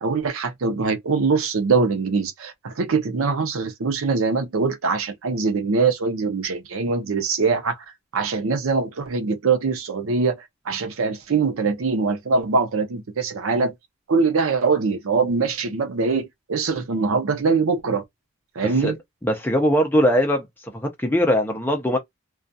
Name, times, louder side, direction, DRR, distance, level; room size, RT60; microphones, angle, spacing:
voice 1, 0.0-7.8 8.1-10.4 10.7-13.7 14.1-18.0 18.6-19.0, right 4 dB, 75° right, 0.6 m, -22 dB
voice 2, 18.6-18.9 19.2-22.0, equal, 10° left, 0.5 m, -21 dB
2.3 x 2.3 x 2.5 m
head